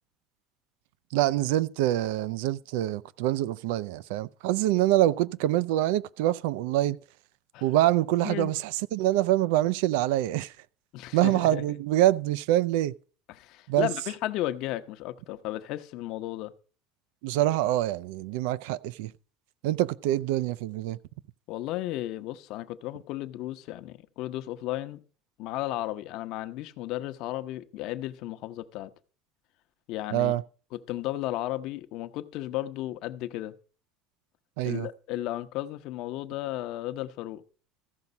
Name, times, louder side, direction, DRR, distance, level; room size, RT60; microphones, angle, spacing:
voice 1, 1.1-7.0 7.6-8.6 8.9-10.5 11.1-12.9 13.7-13.9 17.2-19.1 19.6-21.0 30.1-30.4 34.6-34.9, right 14 dB, 85° right, 0.4 m, -25 dB
voice 2, 10.9-11.8 13.3-16.5 21.5-25.0 25.4-28.9 29.9-30.3 30.7-33.5 34.6-37.4, left 15 dB, 60° left, 0.8 m, -34 dB
14.5 x 5.9 x 5.3 m
cardioid pair, 150°, 0 cm